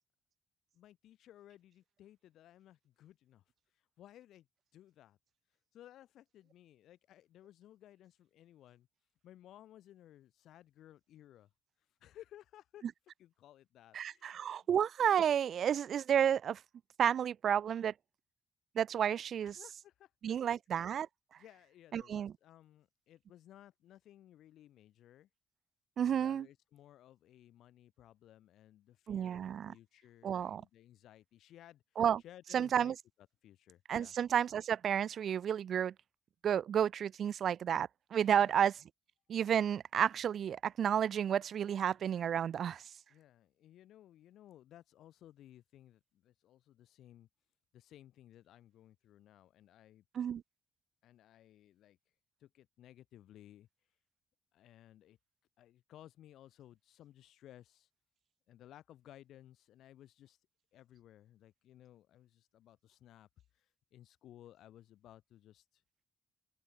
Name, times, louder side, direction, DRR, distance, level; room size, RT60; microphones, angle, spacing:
voice 1, 0.7-3.4 3.7-4.5 4.7-5.2 5.7-8.9 9.2-11.5 12.0-12.8 13.2-14.4 19.4-20.9 21.4-25.3 26.0-31.8 32.2-32.9 33.4-34.2 38.2-38.6 43.1-47.3 47.7-50.0 51.0-52.0 52.4-53.7 54.5-55.2 55.6-57.9 58.5-60.4 60.7-63.3 63.5-65.8, left 12 dB, 80° left, 4.0 m, -59 dB
voice 2, 13.9-16.6 17.0-17.9 18.8-19.6 20.2-21.1 21.9-22.3 26.0-26.5 29.1-29.7 30.2-30.6 32.0-32.2 32.5-32.9 33.9-35.9 36.4-38.7 39.3-42.8 50.1-50.4, right 9 dB, 60° right, 0.4 m, -31 dB
open air
cardioid pair, 90°, 0 cm